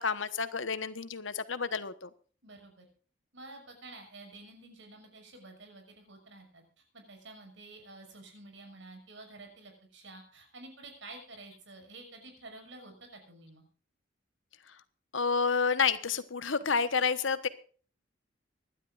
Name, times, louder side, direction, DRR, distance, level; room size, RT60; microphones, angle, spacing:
voice 1, 0.0-2.1 15.1-17.5, left 5 dB, 75° left, 13 dB, 1.2 m, -29 dB
voice 2, 2.4-2.9 3.3-13.6, right 2 dB, 70° right, 4 dB, 6.3 m, -50 dB
25.0 x 12.0 x 2.5 m, 0.42 s
head